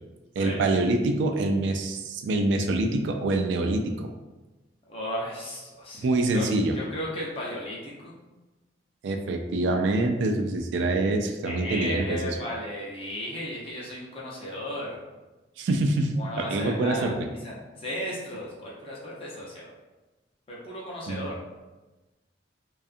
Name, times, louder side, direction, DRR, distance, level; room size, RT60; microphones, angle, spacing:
voice 1, 0.4-4.1 6.0-6.8 9.0-12.4 15.6-17.3 21.1-21.3, right 2 dB, 75° right, 4 dB, 0.3 m, -25 dB
voice 2, 4.9-6.0 6.3-6.5 6.7-8.2 11.4-15.0 16.2-19.6 20.5-21.4, left 1 dB, 30° left, -5 dB, 0.6 m, -35 dB
2.6 x 2.3 x 2.4 m, 1.1 s
head